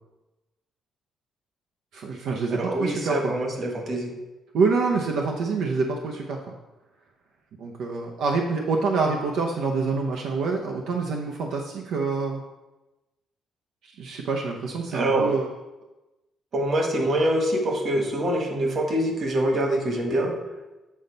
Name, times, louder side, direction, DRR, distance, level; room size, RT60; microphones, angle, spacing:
voice 1, 1.9-3.4 4.5-6.4 7.6-12.4 13.8-15.5, right 4 dB, 80° right, 0 dB, 0.7 m, -26 dB
voice 2, 2.5-4.1 14.9-15.3 16.5-20.3, right 1 dB, 50° right, 2 dB, 1.6 m, -24 dB
8.6 x 4.0 x 5.4 m, 1.1 s
cardioid pair, 90°, 0 cm